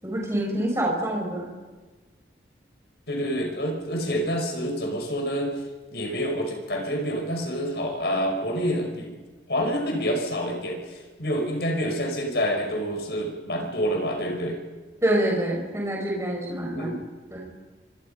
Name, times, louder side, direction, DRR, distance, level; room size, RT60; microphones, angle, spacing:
voice 1, 0.0-1.5 15.0-16.9 17.3-17.5, right 1 dB, 15° right, -2 dB, 6.2 m, -26 dB
voice 2, 3.1-5.5 5.9-9.1 9.5-14.6 16.7-17.0, equal, 65° left, 2 dB, 5.6 m, -27 dB
27.5 x 25.0 x 5.6 m, 1.3 s
head